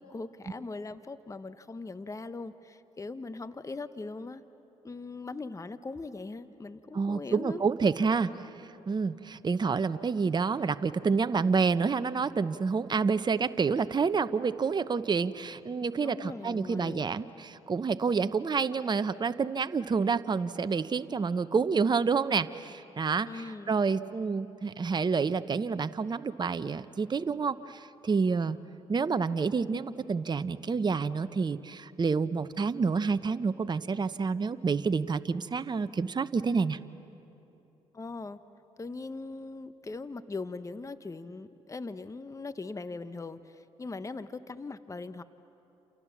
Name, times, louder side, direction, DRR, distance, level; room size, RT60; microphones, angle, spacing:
voice 1, 0.0-4.4 4.8-7.6 16.0-17.1 23.3-23.8 37.9-38.4 38.8-45.2, left 3 dB, 25° left, 13 dB, 1.0 m, -40 dB
voice 2, 6.9-8.3 8.9-28.6 28.9-36.8, right 5 dB, 35° right, 12 dB, 0.8 m, -28 dB
29.0 x 28.0 x 7.3 m, 3.0 s
hypercardioid pair, 55°, 13 cm